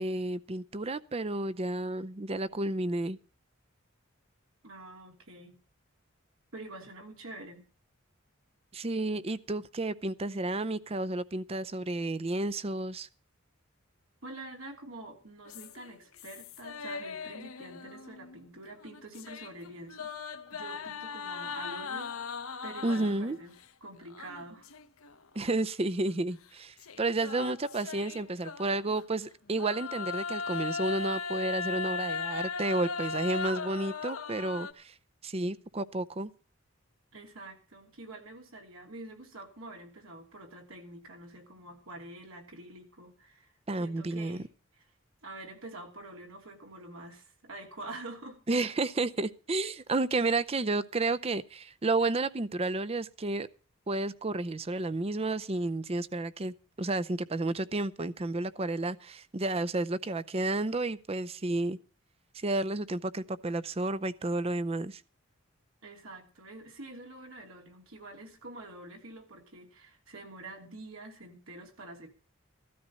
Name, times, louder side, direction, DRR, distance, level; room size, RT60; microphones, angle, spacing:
voice 1, 0.0-3.2 8.7-13.1 22.8-23.4 25.4-34.9 35.2-36.3 43.7-44.4 48.5-53.5 53.9-61.8 62.4-65.0, right 2 dB, 30° right, 0.6 m, -31 dB
voice 2, 4.6-5.6 6.5-7.7 14.2-20.1 20.5-22.1 22.6-23.5 23.8-24.7 37.1-44.8 45.2-48.4 65.8-72.1, right 2 dB, 80° right, 2.9 m, -46 dB
sound 1, 15.5-18.3 18.7-23.3 24.1-25.1 25.5-25.6 26.8-29.0 29.5-34.7, left 5 dB, 90° left, 1.1 m, -38 dB
15.5 x 13.0 x 4.1 m
head